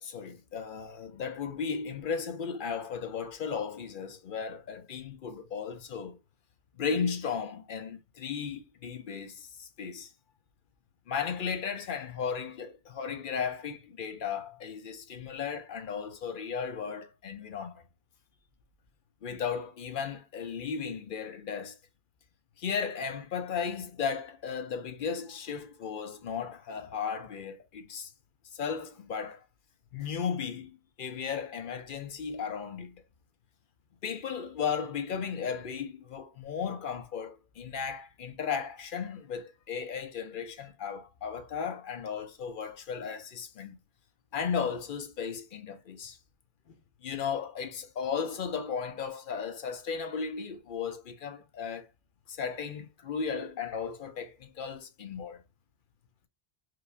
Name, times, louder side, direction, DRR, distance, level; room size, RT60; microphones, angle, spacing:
voice 1, 0.0-6.2 6.8-10.1 11.1-17.8 19.2-21.8 22.6-28.1 28.5-29.4 29.9-33.0 34.0-43.8 44.3-46.2 47.0-51.9 52.3-55.4, left 6 dB, 60° left, 0.7 m, -35 dB
4.9 x 2.3 x 2.4 m
omnidirectional pair, 1.1 m